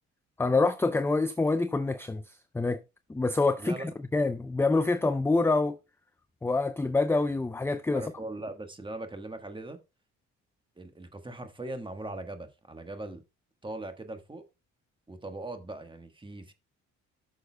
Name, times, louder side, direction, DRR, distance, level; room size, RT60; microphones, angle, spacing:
voice 1, 0.4-2.8 3.1-5.8 6.4-8.0, left 3 dB, 10° left, 0.4 m, -26 dB
voice 2, 3.6-3.9 7.9-9.8 10.8-13.2 13.6-14.4 15.1-16.5, right 2 dB, 15° right, 1.4 m, -40 dB
13.5 x 6.5 x 2.2 m
cardioid pair, 90°, 30 cm